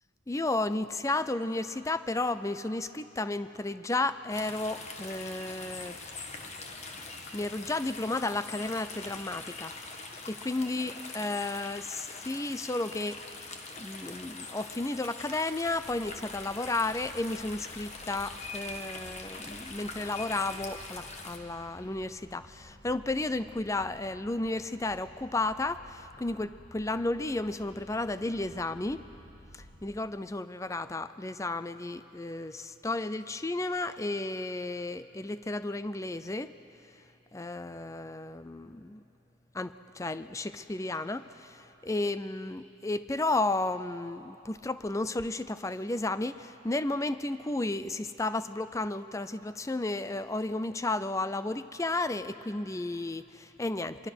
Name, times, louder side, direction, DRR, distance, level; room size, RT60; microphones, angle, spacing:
voice 1, 0.3-6.0 7.3-9.7 10.3-13.2 13.8-29.0 29.5-36.5 37.3-39.0 39.5-54.1, left 2 dB, 15° left, 13 dB, 0.5 m, -33 dB
sound 1, 4.3-21.4, left 3 dB, 35° left, 1.5 m, -43 dB
sound 2, 15.7-30.0, equal, 60° left, 2.5 m, -54 dB
24.0 x 22.5 x 6.2 m, 2.9 s
head